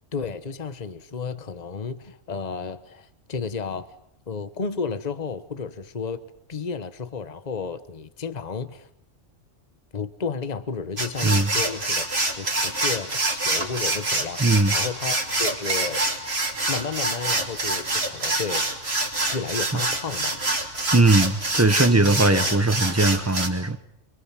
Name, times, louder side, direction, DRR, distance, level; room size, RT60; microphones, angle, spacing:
voice 1, 0.1-3.9 4.3-6.2 6.5-8.9 9.9-12.0 12.4-16.0 16.7-18.9 19.3-20.4 22.3-22.5, left 5 dB, 35° left, 12 dB, 1.3 m, -32 dB
sound 1, 11.0-23.5, right 2 dB, 55° right, 3.4 m, -26 dB
voice 2, 14.4-14.7 20.9-23.8, right 2 dB, 15° right, 10 dB, 1.1 m, -19 dB
28.5 x 24.0 x 7.6 m, 0.76 s
omnidirectional pair, 1.3 m